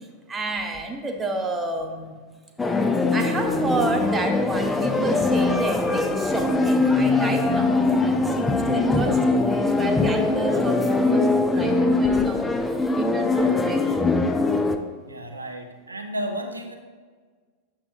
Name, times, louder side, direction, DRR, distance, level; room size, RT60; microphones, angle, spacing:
voice 1, 0.0-2.3 3.1-12.5 12.9-14.0 14.3-14.4, right 2 dB, 15° right, 4 dB, 0.9 m, -30 dB
sound 1, 2.6-14.8, left 3 dB, 10° left, 0.5 m, -22 dB
voice 2, 15.1-16.8, right 1 dB, 80° right, 4 dB, 0.7 m, -32 dB
8.7 x 6.9 x 2.5 m, 1.5 s
figure-of-eight pair, 90°, 0 cm